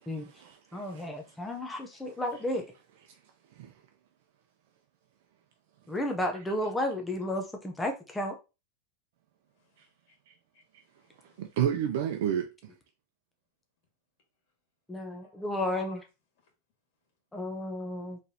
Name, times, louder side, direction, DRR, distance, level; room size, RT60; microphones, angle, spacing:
voice 1, 0.0-1.1 3.5-3.7 10.3-10.4 11.4-12.5, right 9 dB, 70° right, 0.5 m, -31 dB
voice 2, 0.7-2.7 5.9-8.4 14.9-16.0 17.3-18.2, left 1 dB, 5° left, 0.6 m, -33 dB
voice 3, 9.6-10.2 10.5-11.5 15.2-15.4 15.7-16.0 16.4-16.5 17.6-17.7, left 5 dB, 60° left, 1.6 m, -57 dB
4.1 x 3.2 x 2.7 m
supercardioid pair, 150°, 0 cm